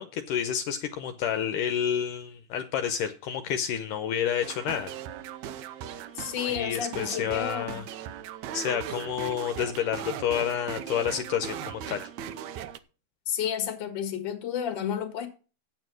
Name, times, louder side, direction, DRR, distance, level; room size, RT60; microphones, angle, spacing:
voice 1, 0.0-4.9 6.5-7.8 8.5-12.1, left 9 dB, 75° left, 2.1 m, -29 dB
sound 1, 4.4-12.8, right 9 dB, 80° right, 1.7 m, -38 dB
voice 2, 6.1-7.8 13.3-15.3, left 9 dB, 45° left, 1.8 m, -31 dB
9.5 x 7.8 x 6.2 m
omnidirectional pair, 4.0 m